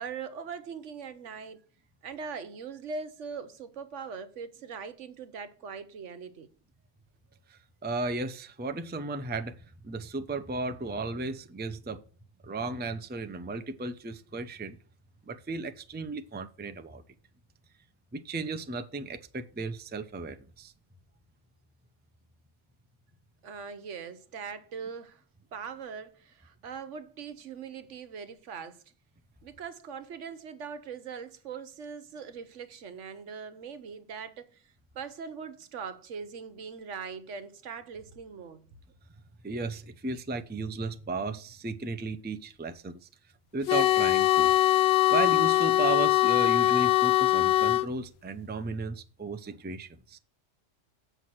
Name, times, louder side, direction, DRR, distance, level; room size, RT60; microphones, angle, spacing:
voice 1, 0.0-1.6 2.0-6.5 23.4-25.2 25.5-28.8 29.4-34.6 34.9-38.7, right 6 dB, 75° right, 1.2 m, -41 dB
voice 2, 7.5-9.6 9.8-12.0 12.4-14.8 15.3-17.0 18.1-20.7 39.4-43.1 43.5-44.5 45.1-50.2, right 3 dB, 10° right, 0.5 m, -35 dB
sound 1, 43.7-47.9, left 15 dB, 65° left, 0.7 m, -22 dB
8.1 x 5.6 x 6.0 m
omnidirectional pair, 1.3 m